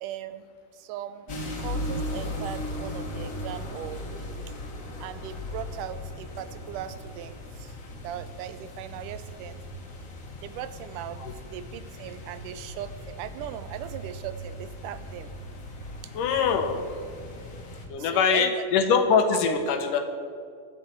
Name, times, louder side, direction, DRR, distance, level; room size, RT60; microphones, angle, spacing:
voice 1, 0.0-4.0 5.0-7.8 8.0-9.6 10.4-11.2 11.5-15.3 16.0-16.1 18.0-18.7 19.3-19.4, right 10 dB, 85° right, 13 dB, 2.2 m, -38 dB
sound 1, 1.3-17.9, left 1 dB, 45° left, 1.9 m, -38 dB
voice 2, 16.1-16.8 17.9-20.0, left 6 dB, 90° left, 6 dB, 2.7 m, -23 dB
23.0 x 7.8 x 4.6 m, 2.3 s
omnidirectional pair, 3.6 m